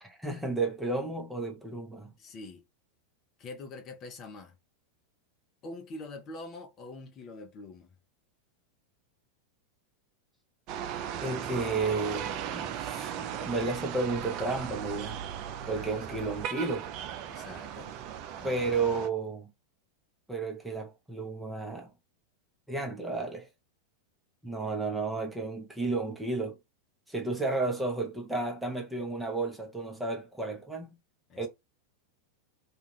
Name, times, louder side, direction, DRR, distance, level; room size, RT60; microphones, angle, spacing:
voice 1, 0.0-2.1 11.2-15.2 15.7-16.9 18.4-19.5 20.3-21.9 22.7-23.5 24.4-26.6 27.1-31.0 31.4-31.5, right 3 dB, 5° right, 0.8 m, -32 dB
voice 2, 2.2-2.6 3.4-4.5 5.6-7.9 15.6-16.2 17.3-17.9 18.4-18.7 31.3-31.5, left 2 dB, 35° left, 0.7 m, -45 dB
sound 1, 10.7-19.1, right 9 dB, 50° right, 0.4 m, -37 dB
2.4 x 2.4 x 3.2 m
hypercardioid pair, 95°, 0 cm